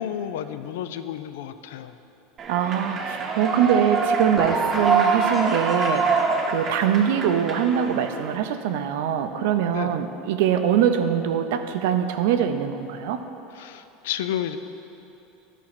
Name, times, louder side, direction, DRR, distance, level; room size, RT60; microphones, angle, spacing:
voice 1, 0.0-1.9 9.7-10.0 13.6-14.6, left 10 dB, 85° left, 11 dB, 0.4 m, -31 dB
Human voice / Clapping / Cheering, 2.4-8.4, right 4 dB, 30° right, 0.8 m, -25 dB
voice 2, 2.5-6.1 6.5-13.2, right 9 dB, 75° right, 8 dB, 0.6 m, -23 dB
sound 1, 4.4-6.5, left 1 dB, 10° left, 0.9 m, -35 dB
11.0 x 4.3 x 5.9 m, 3.0 s
supercardioid pair, 140°, 0 cm